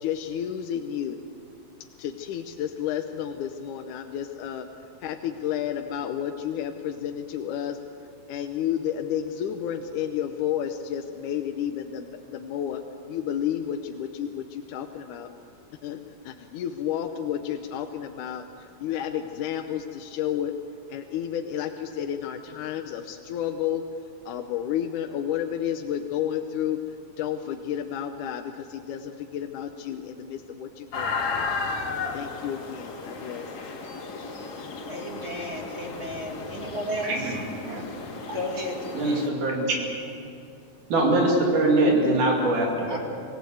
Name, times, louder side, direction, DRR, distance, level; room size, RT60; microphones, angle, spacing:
voice 1, 0.0-1.2 2.0-4.7 5.0-7.8 8.3-12.8 13.1-15.3 15.8-20.5 20.9-23.8 24.3-26.8 27.2-31.5 32.1-33.5, left 10 dB, 80° left, 5 dB, 2.4 m, -31 dB
sound 1, 30.9-39.3, left 4 dB, 60° left, 3.3 m, -34 dB
voice 2, 34.8-37.4 38.3-39.2 40.0-40.2 41.8-42.2 42.8-43.0, equal, 25° right, 0 dB, 2.3 m, -34 dB
voice 3, 37.0-37.4 37.6-37.8 38.9-39.8 40.9-43.0, right 2 dB, 80° right, -1 dB, 4.2 m, -22 dB
26.0 x 17.0 x 7.9 m, 2.5 s
omnidirectional pair, 3.5 m